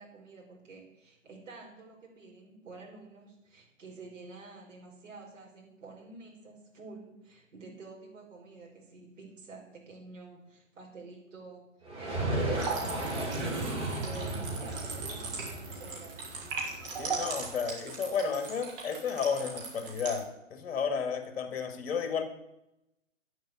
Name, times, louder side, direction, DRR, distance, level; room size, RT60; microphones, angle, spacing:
voice 1, 0.0-16.3, right 3 dB, 65° right, -2 dB, 5.5 m, -50 dB
sound 1, 11.8-17.5, right 2 dB, 15° right, 2.9 m, -35 dB
sound 2, 12.6-20.2, right 4 dB, 45° right, 4.6 m, -39 dB
voice 2, 17.0-22.2, left 6 dB, 50° left, 8 dB, 2.1 m, -32 dB
10.5 x 7.8 x 9.8 m, 0.88 s
hypercardioid pair, 145°, 39 cm